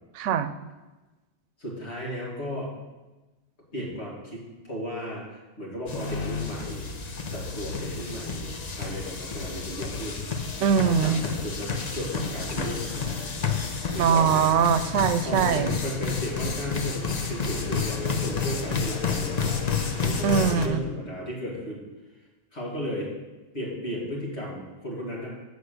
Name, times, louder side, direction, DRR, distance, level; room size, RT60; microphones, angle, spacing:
voice 1, 0.1-0.5 10.6-11.2 14.0-15.8 20.2-20.8, right 7 dB, 90° right, 11 dB, 0.9 m, -22 dB
voice 2, 1.6-2.7 3.7-6.9 7.3-10.5 10.8-13.3 13.9-14.5 15.2-19.7 20.0-21.8 22.5-23.1 23.5-25.3, equal, 65° left, -4 dB, 2.7 m, -35 dB
sound 1, 5.9-20.7, left 5 dB, 40° left, 0.8 m, -30 dB
8.1 x 5.0 x 6.5 m, 1.1 s
omnidirectional pair, 1.2 m